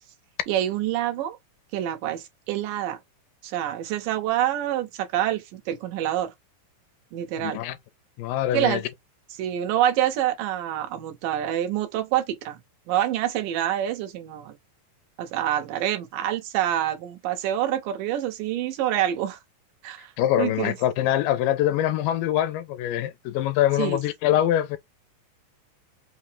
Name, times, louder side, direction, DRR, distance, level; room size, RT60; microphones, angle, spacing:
voice 1, 0.5-1.4 1.7-3.0 3.4-6.3 7.1-7.6 8.5-8.8 9.4-12.6 12.9-14.6 15.2-19.4 19.8-20.1 20.4-20.8 23.8-24.0, right 12 dB, 75° right, 2.5 m, -26 dB
voice 2, 7.4-7.8 8.2-8.8 20.2-24.8, left 12 dB, 85° left, 2.3 m, -24 dB
5.6 x 2.0 x 3.3 m
omnidirectional pair, 4.1 m